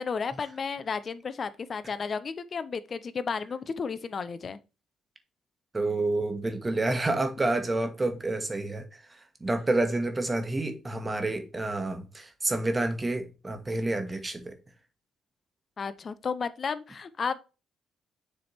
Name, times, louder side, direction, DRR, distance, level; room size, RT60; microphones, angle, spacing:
voice 1, 0.0-4.6 15.8-17.4, left 5 dB, 45° left, 0.6 m, -33 dB
voice 2, 5.7-14.5, right 2 dB, 25° right, 1.3 m, -29 dB
6.7 x 3.5 x 4.3 m
cardioid pair, 80°, 0 cm